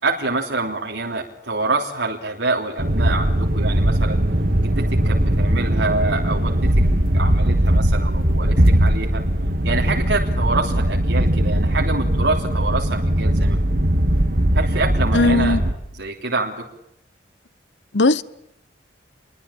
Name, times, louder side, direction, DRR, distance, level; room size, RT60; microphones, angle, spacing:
voice 1, 0.0-4.2 4.6-6.7 7.1-9.2 9.6-13.8 14.5-15.6 16.0-16.6, right 3 dB, 65° right, 3.3 m, -26 dB
sound 1, 2.8-15.7, right 1 dB, 50° right, 2.0 m, -19 dB
voice 2, 15.1-15.6 17.9-18.2, left 2 dB, 65° left, 1.0 m, -17 dB
27.0 x 23.0 x 8.8 m
head